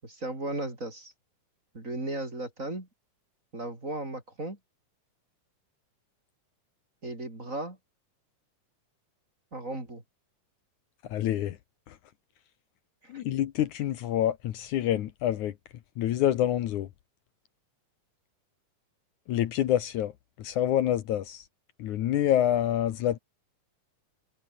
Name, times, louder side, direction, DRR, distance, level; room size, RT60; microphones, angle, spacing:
voice 1, 0.0-1.1 1.7-2.9 3.5-4.6 7.0-7.8 9.5-10.0 13.0-13.2, right 2 dB, 25° right, 5.1 m, -36 dB
voice 2, 11.1-11.6 13.1-15.5 16.0-16.9 19.3-20.1 20.4-21.4 21.8-23.2, left 11 dB, 70° left, 2.5 m, -27 dB
omnidirectional pair, 3.7 m